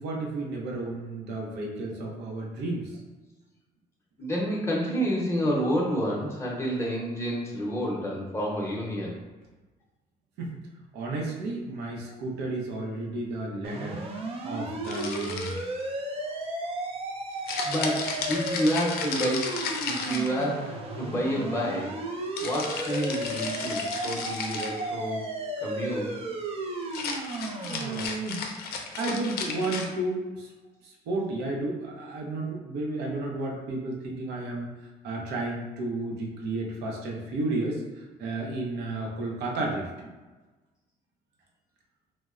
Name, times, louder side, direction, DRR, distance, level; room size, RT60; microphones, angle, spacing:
voice 1, 0.0-3.0 10.4-10.6 10.9-14.0 14.4-15.5 27.6-28.4 29.0-30.5 30.8-34.7 35.0-40.1, right 2 dB, 80° right, -1 dB, 0.6 m, -32 dB
voice 2, 4.2-9.1 17.6-22.0 22.4-25.3 25.6-26.1, equal, 15° left, -3 dB, 0.7 m, -29 dB
sound 1, 13.6-28.1, right 2 dB, 35° right, 0.4 m, -34 dB
sound 2, 14.8-15.8 17.5-20.7 22.4-24.8 26.8-29.9, left 5 dB, 65° left, 0.4 m, -34 dB
3.0 x 2.0 x 2.4 m, 1.2 s
cardioid pair, 110°, 17 cm